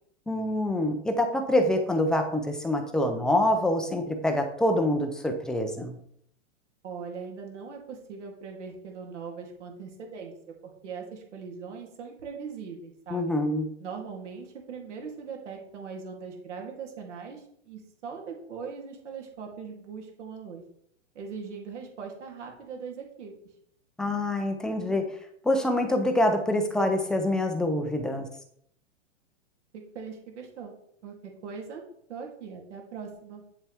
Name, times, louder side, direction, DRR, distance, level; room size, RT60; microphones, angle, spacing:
voice 1, 0.3-6.0 13.1-13.7 24.0-25.0 25.4-28.3, left 1 dB, ahead, 4 dB, 0.4 m, -26 dB
voice 2, 6.8-10.3 10.6-13.3 13.8-20.6 21.1-23.3 29.7-30.7 31.0-31.8 32.1-33.4, right 5 dB, 75° right, 1 dB, 3.0 m, -40 dB
8.2 x 7.2 x 3.5 m, 0.68 s
hypercardioid pair, 145°, 36 cm